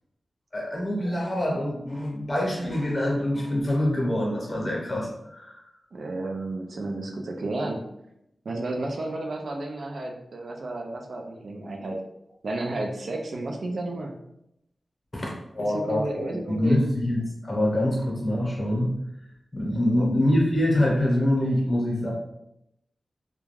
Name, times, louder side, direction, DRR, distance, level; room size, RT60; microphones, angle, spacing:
voice 1, 0.5-5.6 15.1-16.0 16.5-17.2 17.4-19.0 19.5-22.1, left 1 dB, 25° left, -3 dB, 0.8 m, -25 dB
voice 2, 5.9-7.9 8.5-12.0 12.4-14.2 15.6-16.8 19.8-20.1, right 2 dB, 60° right, 2 dB, 0.3 m, -32 dB
2.3 x 2.2 x 3.1 m, 0.83 s
wide cardioid pair, 125°, 0 cm